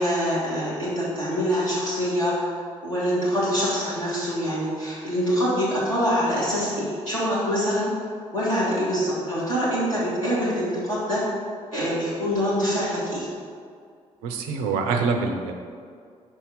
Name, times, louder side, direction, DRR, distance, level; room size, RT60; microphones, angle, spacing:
voice 1, 0.0-2.5 2.8-7.9 8.3-11.2 11.7-13.3, equal, 90° left, -10 dB, 1.7 m, -25 dB
voice 2, 14.2-15.5, right 4 dB, 70° right, 4 dB, 0.7 m, -25 dB
5.7 x 4.5 x 5.5 m, 2.2 s
figure-of-eight pair, 40°, 17 cm